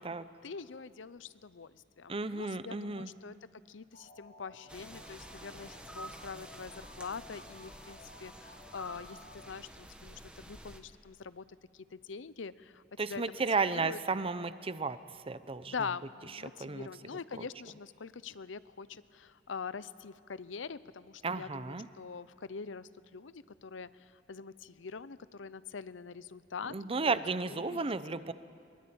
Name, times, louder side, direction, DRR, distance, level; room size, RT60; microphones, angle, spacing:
voice 1, 0.4-3.4 3.7-11.4 11.7-12.8 13.1-14.0 15.7-27.2 27.5-27.8, left 5 dB, 80° left, 16 dB, 0.7 m, -44 dB
voice 2, 2.1-3.1 13.0-15.0 15.3-15.7 16.4-16.9 17.4-17.5 21.2-21.9 26.7-28.3, right 4 dB, 30° right, 14 dB, 0.7 m, -33 dB
sound 1, 3.9-9.5, left 2 dB, 55° left, 3.0 m, -55 dB
sound 2, 4.7-10.8, right 1 dB, 5° right, 1.5 m, -50 dB
22.5 x 21.0 x 8.7 m, 2.4 s
head